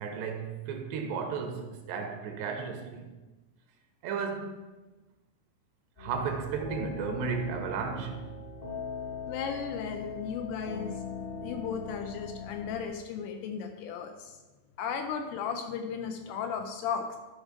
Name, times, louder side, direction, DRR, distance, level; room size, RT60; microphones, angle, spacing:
voice 1, 0.0-3.1 4.0-4.6 6.0-8.2, right 5 dB, 80° right, 2.9 m, -34 dB
sound 1, 6.0-12.8, left 5 dB, 35° left, 0.9 m, -40 dB
voice 2, 9.3-11.0 11.4-14.4 14.8-17.2, left 6 dB, 80° left, 2.5 m, -35 dB
12.5 x 4.9 x 5.0 m
omnidirectional pair, 5.1 m